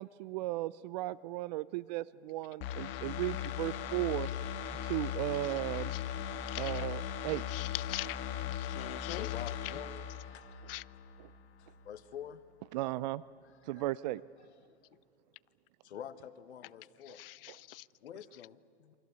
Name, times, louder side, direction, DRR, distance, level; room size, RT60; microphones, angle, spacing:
voice 1, 0.0-4.3 4.8-5.9 6.6-7.4 11.2-11.3 12.7-13.2 13.7-14.2, right 17 dB, 40° right, 0.6 m, -36 dB
sound 1, 2.6-11.3 11.6-11.7, left 10 dB, 35° left, 2.0 m, -38 dB
voice 2, 6.5-6.9 7.5-8.2 8.5-9.3 10.7-10.8 17.1-17.9, left 17 dB, 60° left, 0.6 m, -42 dB
voice 3, 8.8-10.7 11.6-12.4 13.6-13.8 14.4-14.9 15.8-17.2 18.0-18.9, left 9 dB, 80° left, 1.5 m, -48 dB
28.5 x 24.5 x 8.2 m
hypercardioid pair, 145°, 33 cm